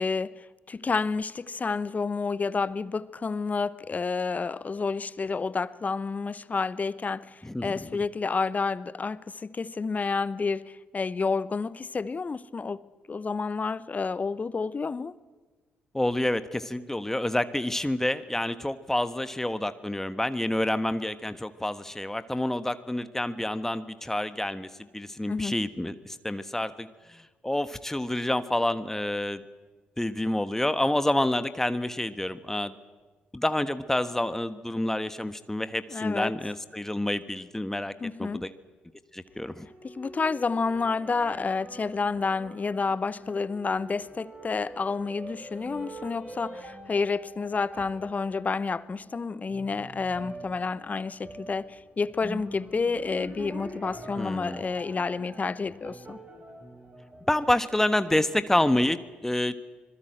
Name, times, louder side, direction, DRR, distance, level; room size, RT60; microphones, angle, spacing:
voice 1, 0.0-12.8 13.1-15.2 25.3-25.6 35.9-36.3 38.0-38.4 39.8-56.2, left 4 dB, 30° left, 0.9 m, -30 dB
voice 2, 7.4-7.9 15.9-24.7 24.9-29.4 30.0-32.7 33.3-37.9 38.2-38.5 39.1-39.7 54.2-54.6 57.3-59.6, left 1 dB, 10° left, 1.3 m, -28 dB
sound 1, 39.3-57.9, right 1 dB, 30° right, 7.1 m, -45 dB
25.5 x 21.0 x 7.8 m
figure-of-eight pair, 40°, 5 cm